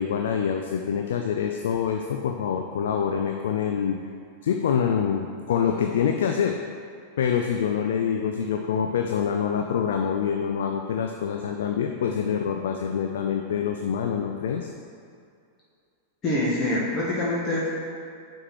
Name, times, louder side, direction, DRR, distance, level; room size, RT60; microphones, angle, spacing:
voice 1, 0.0-4.0 4.4-6.6 7.2-14.7, left 7 dB, 60° left, 4 dB, 0.4 m, -26 dB
voice 2, 16.2-17.7, left 1 dB, 30° left, -7 dB, 1.4 m, -25 dB
9.5 x 4.5 x 3.1 m, 2.3 s
figure-of-eight pair, 90°, 0 cm